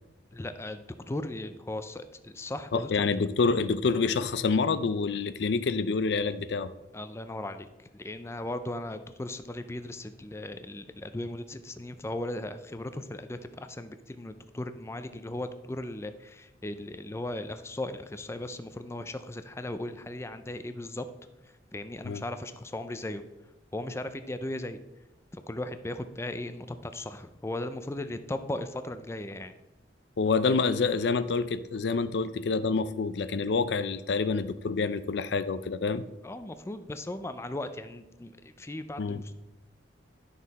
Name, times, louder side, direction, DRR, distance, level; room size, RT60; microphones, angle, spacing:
voice 1, 0.3-3.0 6.9-21.1 21.4-23.2 23.7-24.8 25.3-29.5 36.2-39.3, left 1 dB, 15° left, 10 dB, 0.4 m, -37 dB
voice 2, 2.7-6.7 22.0-22.2 30.2-36.0 39.0-39.2, left 4 dB, 70° left, 14 dB, 0.5 m, -27 dB
11.0 x 6.4 x 4.1 m, 0.99 s
head